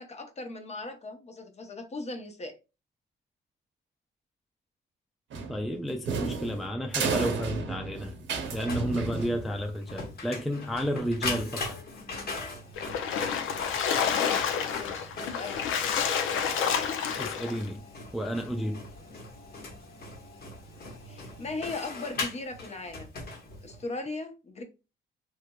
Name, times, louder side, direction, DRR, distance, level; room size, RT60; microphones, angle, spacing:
voice 1, 0.0-2.6 14.7-15.6 21.1-23.1 23.6-24.6, left 3 dB, 35° left, 0.8 m, -38 dB
sound 1, 5.3-9.8, right 4 dB, 70° right, 0.8 m, -33 dB
voice 2, 5.5-8.2 8.5-11.8 17.2-17.8 18.1-18.9, equal, ahead, 0.4 m, -32 dB
Printer, 8.5-23.9, left 3 dB, 50° left, 1.1 m, -40 dB
Splash splatter, 12.8-17.6, left 7 dB, 85° left, 0.6 m, -29 dB
3.3 x 3.0 x 2.3 m
cardioid pair, 90°, 20 cm